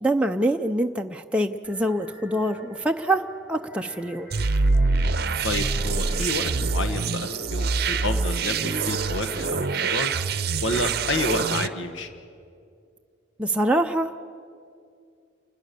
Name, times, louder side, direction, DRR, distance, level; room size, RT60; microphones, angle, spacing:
voice 1, 0.0-4.3 13.4-14.2, right 1 dB, 5° right, 3 dB, 0.5 m, -25 dB
sound 1, 1.6-10.4, equal, 15° left, 6.8 m, -45 dB
sound 2, 4.3-11.7, right 4 dB, 55° right, 0.7 m, -25 dB
voice 2, 5.4-10.1 10.6-12.1, left 2 dB, 85° left, 8 dB, 1.3 m, -29 dB
28.5 x 21.0 x 6.8 m, 2.4 s
head